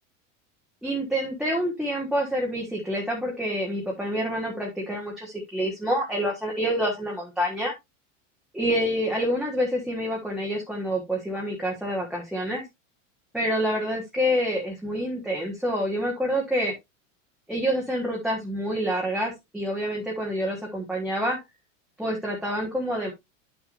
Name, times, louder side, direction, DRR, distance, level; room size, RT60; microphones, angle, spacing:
voice 1, 0.8-7.7 8.5-12.6 13.3-16.7 17.5-21.4 22.0-23.1, equal, ahead, -3 dB, 1.3 m, -27 dB
10.0 x 6.2 x 2.6 m, 0.20 s
supercardioid pair, 160°, 37 cm